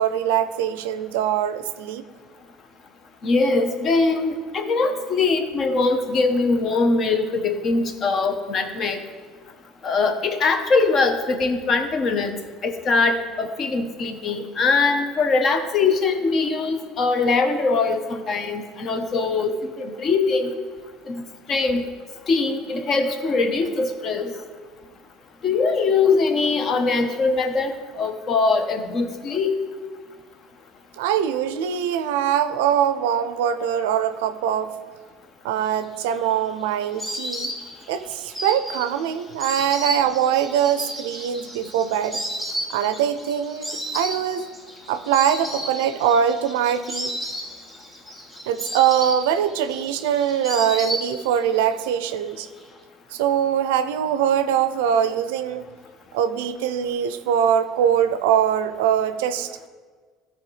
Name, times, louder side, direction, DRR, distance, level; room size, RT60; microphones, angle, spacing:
voice 1, 0.0-2.0 31.0-34.8 35.4-37.5 37.9-42.2 42.7-44.4 44.9-47.1 48.5-52.5 53.1-55.7 56.1-59.7, right 9 dB, 85° right, 11 dB, 0.4 m, -22 dB
voice 2, 3.2-9.0 9.8-12.4 12.6-20.5 21.1-21.8 22.3-24.3 25.4-29.5, left 4 dB, 45° left, 7 dB, 0.9 m, -22 dB
Insect, 35.8-51.5 51.8-52.6, equal, 20° left, 2.0 m, -33 dB
13.0 x 4.4 x 3.2 m, 1.5 s
supercardioid pair, 95°, 0 cm